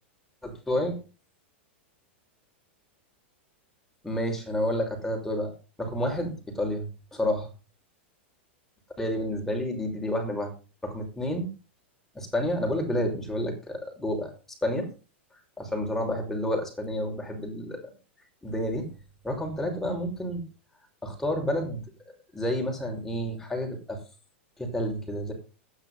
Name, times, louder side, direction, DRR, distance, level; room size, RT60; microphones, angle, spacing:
voice 1, 0.4-1.0 4.0-5.5 5.8-7.5 9.0-10.5 10.8-11.5 12.1-14.3 14.6-14.9 15.6-17.8 18.4-18.9 19.2-20.4 21.0-21.8 22.3-24.0 24.6-25.3, left 1 dB, 5° left, 1 dB, 5.8 m, -29 dB
12.0 x 10.0 x 5.7 m, 0.34 s
hypercardioid pair, 120°, 6 cm